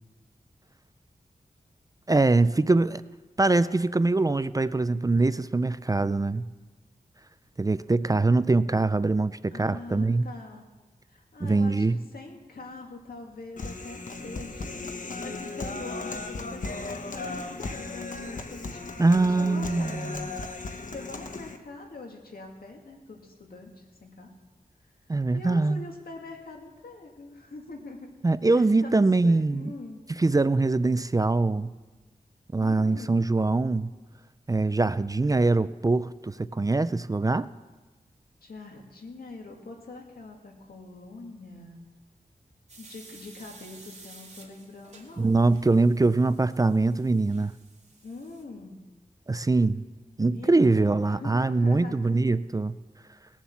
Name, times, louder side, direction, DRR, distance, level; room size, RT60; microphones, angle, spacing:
voice 1, 2.1-3.0 3.4-6.4 7.6-10.3 11.4-12.0 19.0-20.3 25.1-25.8 28.2-29.7 30.2-31.7 32.5-33.9 34.5-37.5 45.2-47.5 49.3-49.8 50.2-52.7, right 3 dB, 25° right, 15 dB, 0.4 m, -23 dB
voice 2, 9.5-10.6 11.1-14.9 15.2-18.8 19.4-20.4 20.9-24.3 25.3-28.1 28.4-30.0 32.6-33.2 38.4-41.8 42.8-45.5 48.0-48.8 50.2-52.0, left 3 dB, 75° left, 1 dB, 2.3 m, -43 dB
Human voice, 13.6-21.6, left 3 dB, 60° left, 1.2 m, -36 dB
sound 1, 42.7-48.4, right 3 dB, 45° right, 2.6 m, -52 dB
19.5 x 7.3 x 7.2 m, 1.2 s
wide cardioid pair, 70°, 15 cm